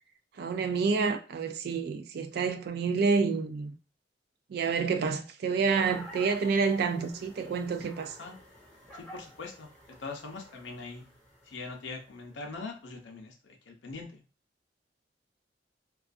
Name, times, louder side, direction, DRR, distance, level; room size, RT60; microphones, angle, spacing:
voice 1, 0.4-3.7 4.5-8.2, right 5 dB, 60° right, 0.3 m, -28 dB
sound 1, 5.7-12.7, equal, 5° left, 0.7 m, -50 dB
voice 2, 8.9-11.0 11.5-14.2, left 3 dB, 85° left, 0.5 m, -42 dB
2.3 x 2.3 x 2.4 m
head